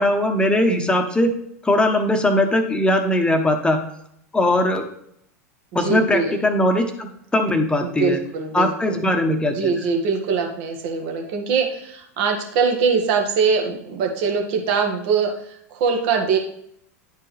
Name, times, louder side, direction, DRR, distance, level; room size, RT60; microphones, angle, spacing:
voice 1, 0.0-1.3 1.6-3.8 4.3-4.9 5.7-8.2 8.5-9.7, left 1 dB, 10° left, 5 dB, 1.0 m, -20 dB
voice 2, 5.7-6.3 7.8-9.0 9.5-16.4, right 5 dB, 55° right, 2 dB, 1.5 m, -22 dB
10.5 x 4.5 x 3.3 m, 0.72 s
hypercardioid pair, 95°, 9 cm